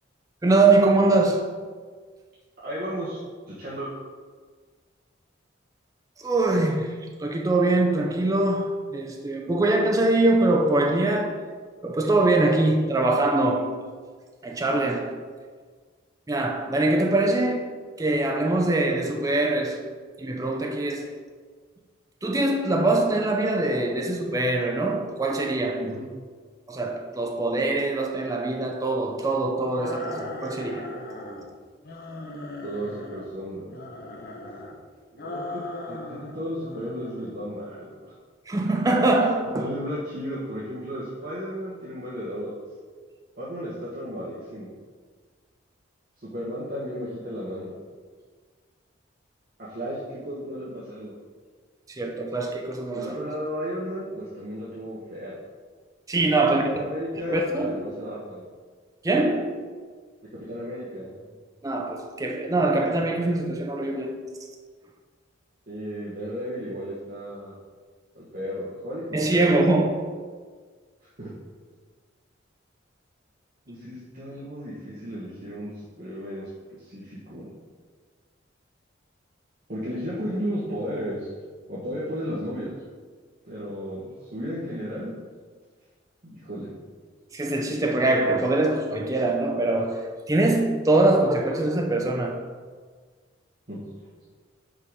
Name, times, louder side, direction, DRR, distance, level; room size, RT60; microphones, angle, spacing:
voice 1, 0.4-1.5 6.2-6.9 7.2-11.5 11.8-13.9 14.4-15.2 16.3-17.7 18.0-19.9 20.2-21.2 22.2-25.9 26.7-30.9 38.5-39.7 51.9-53.2 56.1-56.6 57.1-57.9 59.0-59.6 61.6-64.2 69.1-70.0 87.3-92.4, right 2 dB, 15° right, 0.5 m, -23 dB
voice 2, 2.6-3.2 3.5-3.9 25.8-26.1 32.6-33.8 35.1-38.1 39.5-42.5 43.4-44.7 46.2-47.8 49.6-51.1 52.9-55.3 56.6-58.4 60.3-61.3 65.7-67.5 68.1-69.8 71.2-71.3 73.7-75.7 76.0-76.5 76.8-77.5 79.7-81.3 81.7-82.8 83.4-85.1 86.2-86.7 93.7-93.8, equal, 45° right, 1.3 m, -34 dB
sound 1, 29.7-31.5 31.8-33.3 33.7-34.8 35.2-36.4 36.6-37.4, left 2 dB, 50° left, 0.8 m, -38 dB
5.6 x 4.9 x 5.3 m
head